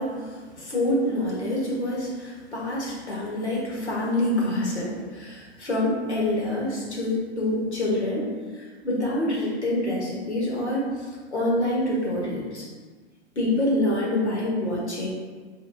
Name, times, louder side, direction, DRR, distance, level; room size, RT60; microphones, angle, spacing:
voice 1, 0.0-8.3 8.5-11.1 11.3-12.7 13.3-15.1, left 1 dB, 75° left, -4 dB, 1.3 m, -26 dB
4.7 x 2.8 x 2.7 m, 1.5 s
figure-of-eight pair, 110°, 34 cm